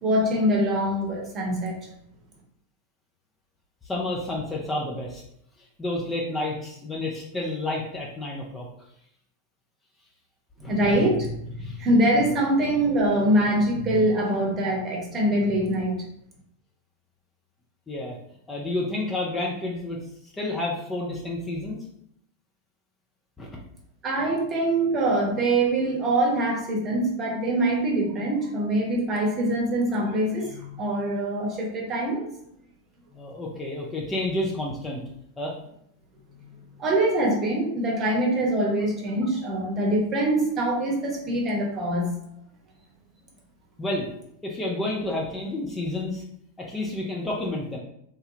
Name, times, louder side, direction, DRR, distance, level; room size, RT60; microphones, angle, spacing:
voice 1, 0.0-1.7 10.6-16.0 24.0-32.3 36.8-42.1, right 1 dB, 30° right, -2 dB, 1.0 m, -24 dB
voice 2, 3.8-5.2 5.8-8.7 10.6-10.9 11.6-11.8 17.9-18.2 18.5-21.8 23.4-23.5 33.1-35.0 35.4-35.5 43.8-44.1 44.4-46.2 46.6-47.8, left 2 dB, 15° left, -3 dB, 0.5 m, -30 dB
3.2 x 2.2 x 3.0 m, 0.73 s
figure-of-eight pair, 90°, 0 cm